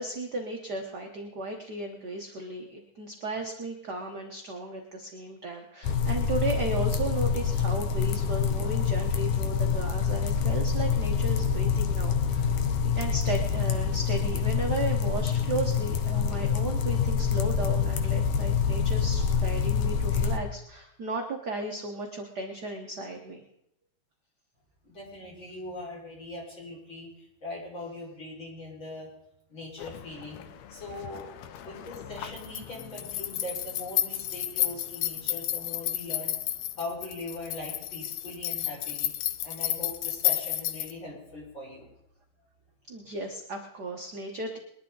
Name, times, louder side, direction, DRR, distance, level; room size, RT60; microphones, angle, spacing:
voice 1, 0.0-12.6 12.9-23.4 42.9-44.6, right 2 dB, 55° right, 2 dB, 1.2 m, -35 dB
sound 1, 5.8-20.4, left 6 dB, 90° left, 2.5 m, -26 dB
voice 2, 24.8-29.1 29.5-30.4 30.7-31.3 31.6-36.3 36.8-39.1 39.4-41.9, left 2 dB, 40° left, -5 dB, 5.9 m, -41 dB
sound 2, 29.8-40.9, left 13 dB, 70° left, 1.9 m, -32 dB
22.0 x 11.5 x 4.0 m, 0.79 s
omnidirectional pair, 3.4 m